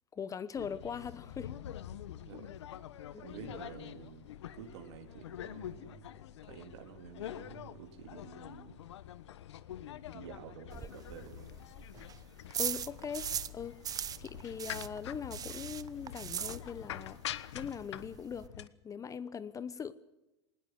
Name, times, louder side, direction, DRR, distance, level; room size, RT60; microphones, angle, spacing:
voice 1, 0.1-1.5 3.1-3.2 12.5-13.8 14.2-17.2 17.5-19.9, left 7 dB, 25° left, 1.0 m, -41 dB
sound 1, 0.5-18.7, left 11 dB, 85° left, 1.2 m, -46 dB
voice 2, 3.2-6.1 6.4-8.8 10.1-11.5, right 7 dB, 80° right, 3.7 m, -50 dB
sound 2, 10.7-13.6 13.8-17.1 17.3-17.4 17.7-17.8 18.0-18.5, right 9 dB, 25° right, 0.8 m, -39 dB
20.5 x 19.5 x 7.7 m
hypercardioid pair, 115°, 14 cm